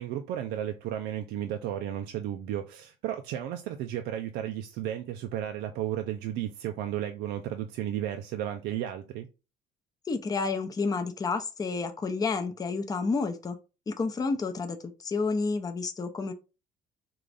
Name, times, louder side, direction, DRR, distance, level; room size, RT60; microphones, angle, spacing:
voice 1, 0.0-9.3, right 11 dB, 85° right, 0.4 m, -33 dB
voice 2, 10.1-13.6 13.9-16.3, left 4 dB, 20° left, 0.6 m, -30 dB
3.7 x 2.5 x 3.3 m
cardioid pair, 110°, 17 cm